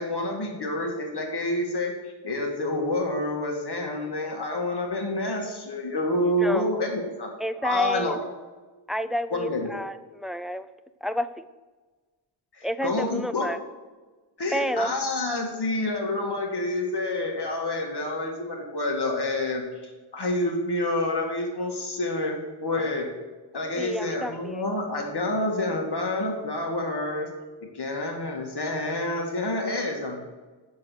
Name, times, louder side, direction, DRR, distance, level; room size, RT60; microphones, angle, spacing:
voice 1, 0.0-1.9 2.2-7.3 7.6-8.2 9.3-9.7 12.5-13.5 14.4-23.1 23.5-27.3 27.7-30.2, left 2 dB, 60° left, 1 dB, 2.0 m, -28 dB
voice 2, 7.4-8.2 8.9-10.7 11.0-11.5 12.6-13.6 14.5-14.9 23.8-24.7, left 1 dB, ahead, 11 dB, 0.5 m, -29 dB
8.3 x 7.0 x 6.4 m, 1.3 s
wide cardioid pair, 80°, 45 cm